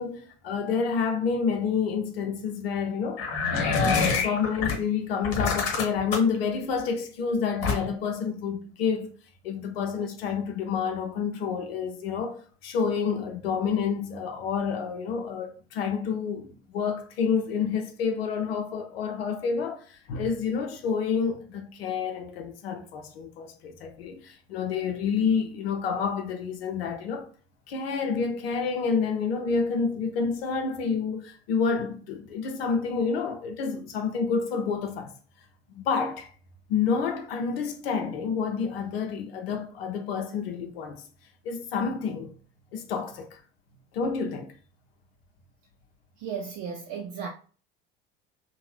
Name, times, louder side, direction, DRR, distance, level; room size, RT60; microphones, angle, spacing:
voice 1, 0.0-3.2 3.6-9.1 9.4-27.3 27.7-35.1 35.7-36.3 36.7-41.0 41.4-42.3 42.7-43.4 43.9-44.5, left 6 dB, 70° left, 0.6 m, -29 dB
sound 1, 3.2-4.7 5.2-6.4 7.6-8.1, left 4 dB, 55° left, 1.2 m, -26 dB
voice 2, 46.2-47.3, right 6 dB, 55° right, 0.6 m, -35 dB
2.7 x 2.2 x 3.2 m
figure-of-eight pair, 65°, 31 cm